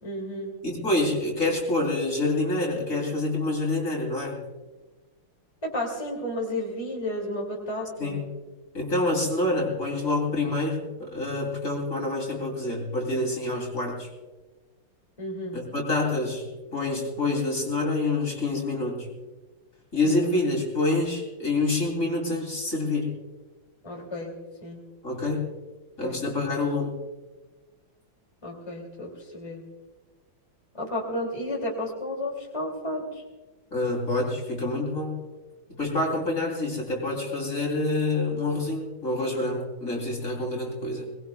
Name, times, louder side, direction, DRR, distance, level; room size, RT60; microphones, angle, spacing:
voice 1, 0.0-0.5 5.6-8.2 15.2-15.6 20.0-20.1 23.8-24.3 24.6-24.8 26.0-26.2 28.4-29.6 30.7-33.2, left 1 dB, 15° left, -2 dB, 2.5 m, -32 dB
voice 2, 0.6-4.4 8.0-8.2 8.7-14.1 15.5-19.1 19.9-23.1 25.0-25.5 26.0-27.0 33.7-35.2 35.8-41.1, left 2 dB, 35° left, 0 dB, 3.5 m, -27 dB
23.5 x 20.0 x 2.3 m, 1.2 s
omnidirectional pair, 2.4 m